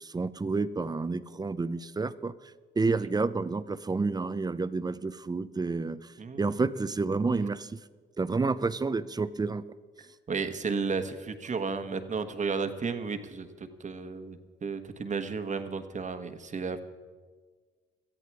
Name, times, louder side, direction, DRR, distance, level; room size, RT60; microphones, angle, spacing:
voice 1, 0.0-2.3 2.8-7.8 8.2-9.6, right 3 dB, 20° right, 15 dB, 0.6 m, -30 dB
voice 2, 6.2-6.6 10.3-16.8, right 5 dB, 40° right, 9 dB, 1.3 m, -33 dB
17.5 x 13.5 x 4.8 m, 1.5 s
cardioid pair, 90°, 20 cm